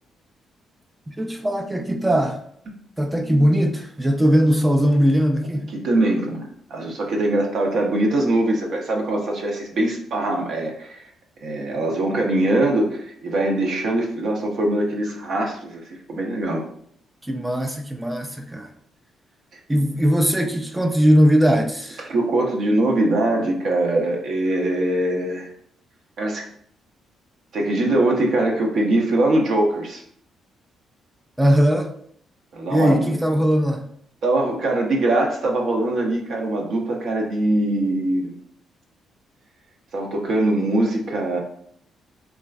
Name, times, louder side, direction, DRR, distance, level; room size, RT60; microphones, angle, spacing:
voice 1, 1.1-2.4 3.0-5.7 17.3-18.7 19.7-22.1 31.4-31.9 32.7-33.8, equal, 10° right, 4 dB, 0.3 m, -19 dB
voice 2, 5.7-11.0 11.4-16.6 22.1-25.5 26.2-26.4 27.5-30.0 32.5-33.2 34.2-38.3 39.9-41.4, right 1 dB, 65° right, 0 dB, 0.6 m, -22 dB
3.0 x 2.4 x 2.4 m, 0.65 s
cardioid pair, 90°, 0 cm